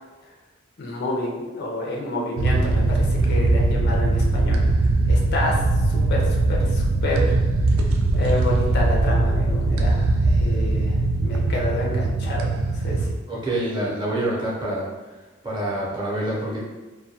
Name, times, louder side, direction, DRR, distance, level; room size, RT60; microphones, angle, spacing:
voice 1, 0.8-4.6 5.1-5.6 5.9-7.4 8.1-13.1, left 1 dB, 55° left, -2 dB, 0.5 m, -29 dB
sound 1, 2.4-13.1, right 2 dB, 85° right, 0.3 m, -20 dB
voice 2, 13.3-14.9 15.4-16.6, right 1 dB, 25° right, -6 dB, 0.6 m, -26 dB
2.2 x 2.2 x 2.7 m, 1.2 s
head